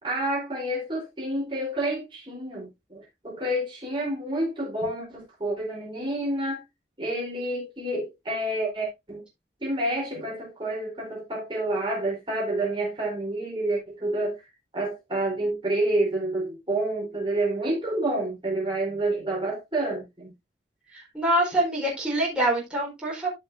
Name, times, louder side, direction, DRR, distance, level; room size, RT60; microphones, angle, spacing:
voice 1, 0.0-6.6 7.0-9.2 9.6-14.4 14.7-20.3, right 1 dB, 30° right, 4.0 m, -29 dB
voice 2, 20.9-23.3, right 1 dB, 5° right, 4.4 m, -25 dB
14.0 x 5.8 x 2.7 m
head